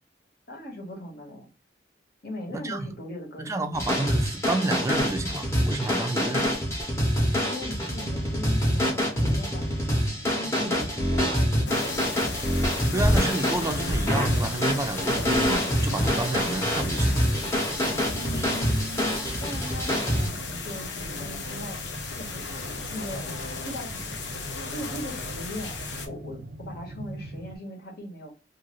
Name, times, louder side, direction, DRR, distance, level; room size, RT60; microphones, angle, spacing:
voice 1, 0.5-1.5 2.2-3.5 7.4-11.9 18.1-22.4 22.7-23.2 23.6-24.2 24.7-25.8 26.1-28.3, left 1 dB, 60° left, 1.0 m, -39 dB
voice 2, 2.5-2.9 3.4-6.5 12.9-17.2 18.4-18.6, right 2 dB, 15° right, 0.4 m, -30 dB
sound 1, 3.7-20.3, equal, 15° left, 0.8 m, -26 dB
sound 2, 7.9-27.6, right 2 dB, 85° right, 0.6 m, -44 dB
sound 3, 11.7-26.1, left 3 dB, 80° left, 0.6 m, -35 dB
2.6 x 2.5 x 3.0 m
head